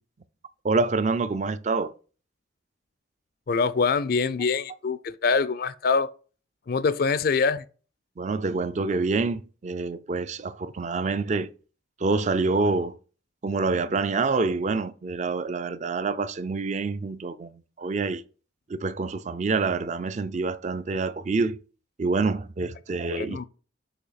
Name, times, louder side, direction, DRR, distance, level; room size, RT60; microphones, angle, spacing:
voice 1, 0.6-1.9 8.2-11.5 12.0-13.0 13.4-18.2 18.7-21.6 22.0-23.5, right 3 dB, 40° right, 0.4 m, -27 dB
voice 2, 3.5-6.1 6.7-7.6 23.1-23.5, left 5 dB, 50° left, 0.4 m, -24 dB
6.5 x 2.8 x 5.7 m
head